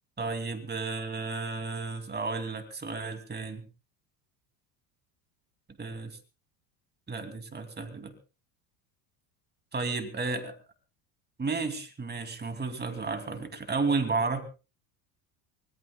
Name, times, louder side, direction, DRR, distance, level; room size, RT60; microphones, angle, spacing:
voice 1, 0.2-3.7 5.8-6.2 7.1-8.1 9.7-10.5 11.4-14.4, right 4 dB, 20° right, 7 dB, 2.8 m, -32 dB
24.5 x 18.5 x 2.4 m, 0.33 s
supercardioid pair, 95°, 49 cm